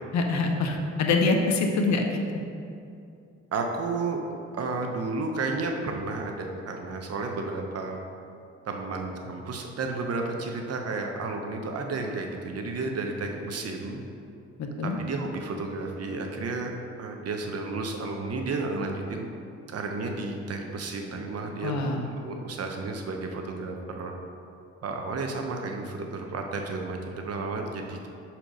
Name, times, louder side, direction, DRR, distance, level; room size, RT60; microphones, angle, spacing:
voice 1, 0.1-2.2 14.6-15.0 21.6-22.0, left 3 dB, 65° left, 3 dB, 0.9 m, -25 dB
voice 2, 3.5-4.2 4.6-8.0 8.6-14.0 14.8-19.3 19.7-21.7 22.2-24.1 24.8-28.1, right 3 dB, 55° right, 3 dB, 0.9 m, -32 dB
6.0 x 4.5 x 5.2 m, 2.6 s
cardioid pair, 90°, 30 cm